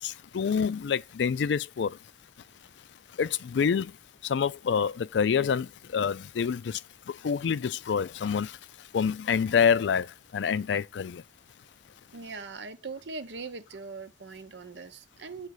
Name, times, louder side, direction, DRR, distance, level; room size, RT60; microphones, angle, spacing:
voice 1, 0.0-2.0 3.2-3.9 4.2-6.8 7.1-8.6 8.9-11.2, left 6 dB, 85° left, 0.4 m, -27 dB
voice 2, 12.1-15.5, right 4 dB, 85° right, 0.8 m, -41 dB
8.2 x 4.0 x 4.8 m
head